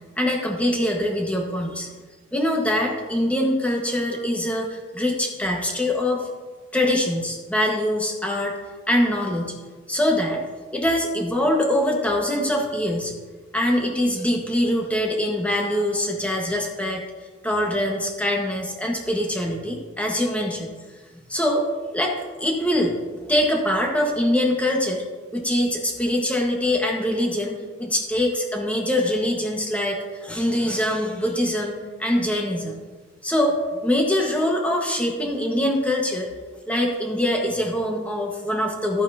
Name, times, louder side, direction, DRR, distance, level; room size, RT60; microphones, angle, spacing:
voice 1, 0.2-1.9 2.3-6.3 6.7-8.5 8.9-9.6 9.9-10.4 10.7-13.1 13.5-17.0 17.4-20.8 21.3-21.7 21.9-23.0 23.3-25.0 25.3-32.8 33.2-36.3 36.7-39.0, left 1 dB, 10° left, 0 dB, 1.5 m, -23 dB
13.5 x 9.0 x 2.8 m, 1.3 s
head